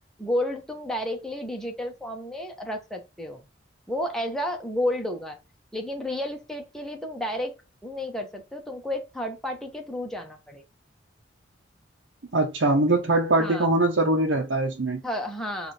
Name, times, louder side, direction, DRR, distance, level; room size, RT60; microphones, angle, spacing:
voice 1, 0.2-3.5 3.9-5.4 5.7-7.5 7.8-10.6 13.4-13.7 15.0-15.7, left 1 dB, 5° left, 0.8 m, -31 dB
voice 2, 12.3-15.0, right 2 dB, 75° right, 0.8 m, -22 dB
5.0 x 2.5 x 4.1 m
head